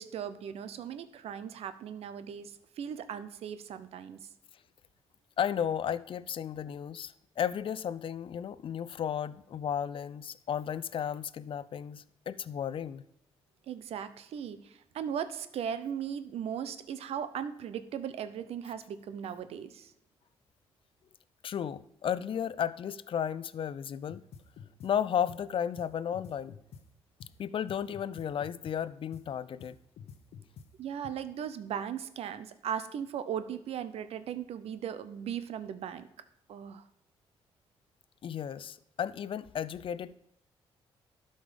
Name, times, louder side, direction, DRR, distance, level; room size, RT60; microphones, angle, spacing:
voice 1, 0.0-4.2 13.7-19.9 30.8-36.1 36.5-36.8, right 8 dB, 75° right, 0.7 m, -38 dB
voice 2, 5.4-13.0 21.4-24.2 24.8-26.5 27.4-29.8 38.2-40.2, left 8 dB, 55° left, 0.4 m, -34 dB
sound 1, 24.1-24.9 25.3-25.4 25.8-26.8 27.2-27.3 27.7-28.8 29.1-29.2 29.6-30.7 31.0-31.1, left 7 dB, 80° left, 0.9 m, -48 dB
12.0 x 5.2 x 5.1 m
cardioid pair, 70°, 10 cm